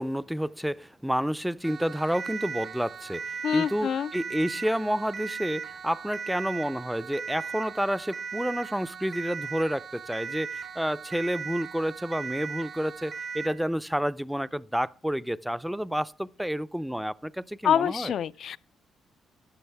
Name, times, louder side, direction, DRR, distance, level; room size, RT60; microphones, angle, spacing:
voice 1, 0.0-18.1, equal, 5° right, 0.4 m, -30 dB
Siren, 1.6-13.6, right 6 dB, 45° right, 0.8 m, -38 dB
voice 2, 3.4-4.1 17.6-18.6, left 9 dB, 65° left, 0.4 m, -26 dB
13.5 x 8.9 x 3.4 m
cardioid pair, 90°, 0 cm